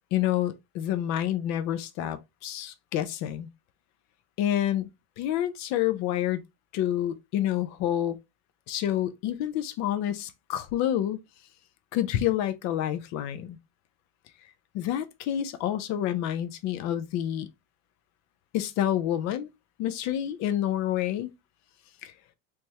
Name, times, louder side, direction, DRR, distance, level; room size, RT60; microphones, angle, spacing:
voice 1, 0.1-3.5 4.4-4.9 5.2-6.4 6.7-8.2 8.7-11.2 11.9-13.6 14.7-17.5 18.5-19.5 19.8-21.3 22.0-22.1, left 11 dB, 40° left, 0.5 m, -28 dB
3.4 x 3.1 x 2.7 m
supercardioid pair, 140°, 43 cm